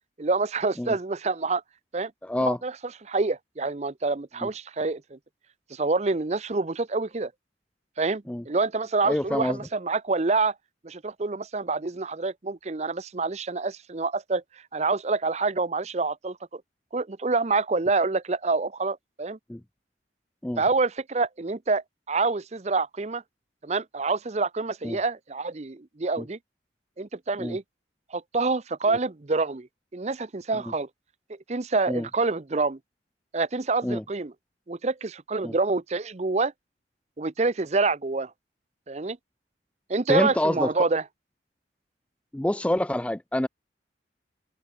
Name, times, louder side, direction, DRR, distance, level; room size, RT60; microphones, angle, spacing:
voice 1, 0.2-1.6 1.9-2.1 2.4-2.7 3.0-5.2 5.7-7.3 8.0-10.5 10.8-14.4 14.7-16.6 16.9-19.4 20.6-23.2 23.6-26.4 27.0-27.6 28.1-30.9 31.5-32.8 33.3-34.3 34.7-36.5 37.2-38.3 38.9-39.2 39.9-41.0, right 3 dB, 35° right, 0.6 m, -27 dB
voice 2, 2.2-2.6 4.4-4.5 8.3-8.4 9.0-9.6 19.5-19.6 20.4-20.6 24.8-25.0 26.2-26.3 27.4-27.6 28.9-29.0 30.5-30.6 31.9-32.1 33.8-34.0 35.4-35.5 40.1-40.7 42.3-43.5, left 1 dB, 5° left, 0.3 m, -27 dB
head